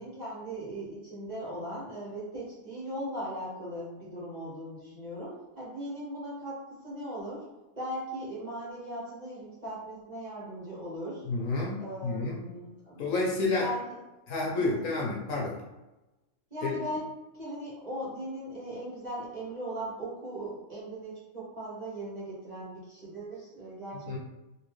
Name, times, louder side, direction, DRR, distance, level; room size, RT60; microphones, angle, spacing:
voice 1, 0.0-7.5 7.8-11.3 11.8-14.0 14.4-14.9 16.5-17.0 17.3-24.2, right 1 dB, 30° right, -8 dB, 1.3 m, -39 dB
voice 2, 11.3-12.4 13.0-13.7 14.3-15.6 16.6-16.7 24.1-24.2, left 3 dB, 70° left, -3 dB, 1.2 m, -30 dB
3.5 x 2.8 x 3.1 m, 1.0 s
omnidirectional pair, 1.5 m